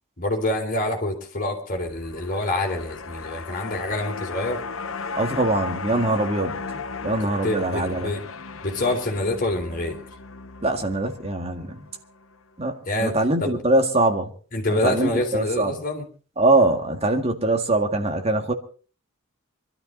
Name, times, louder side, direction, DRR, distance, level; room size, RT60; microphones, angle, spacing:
voice 1, 0.2-4.6 7.2-8.2 8.6-10.0 12.8-13.6 14.5-16.0, left 1 dB, 40° left, 3.8 m, -26 dB
sound 1, 1.9-12.3 12.7-12.8, left 4 dB, 65° left, 0.9 m, -36 dB
voice 2, 5.2-6.6 7.0-8.1 10.6-11.8 12.6-14.3 14.7-15.8 16.4-18.5, right 2 dB, 30° right, 1.9 m, -22 dB
24.0 x 13.0 x 4.0 m
head